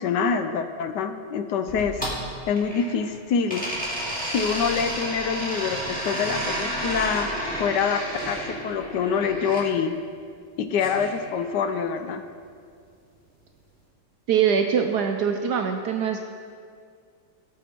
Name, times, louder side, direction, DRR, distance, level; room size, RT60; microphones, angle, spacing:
voice 1, 0.0-2.0 2.5-3.7 4.2-7.3 7.6-10.0 10.6-12.2, left 6 dB, 70° left, 8 dB, 1.1 m, -26 dB
sound 1, 1.7-3.1 3.5-9.6 10.7-11.9, right 1 dB, 5° left, 1.9 m, -31 dB
voice 2, 14.3-16.2, right 7 dB, 70° right, 4 dB, 1.0 m, -23 dB
17.0 x 6.4 x 4.4 m, 2.2 s
omnidirectional pair, 2.1 m